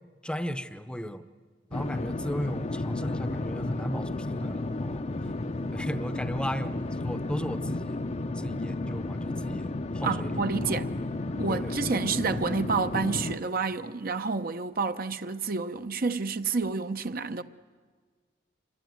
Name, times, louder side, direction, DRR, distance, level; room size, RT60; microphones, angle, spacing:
voice 1, 0.2-1.2 1.7-5.1 5.7-8.0 8.3-10.7 11.3-11.7, equal, 5° left, 0.8 m, -36 dB
sound 1, 1.7-13.4, left 2 dB, 35° left, 0.7 m, -32 dB
voice 2, 10.0-10.9 11.4-17.4, right 4 dB, 55° right, 0.9 m, -29 dB
27.0 x 22.5 x 9.4 m
head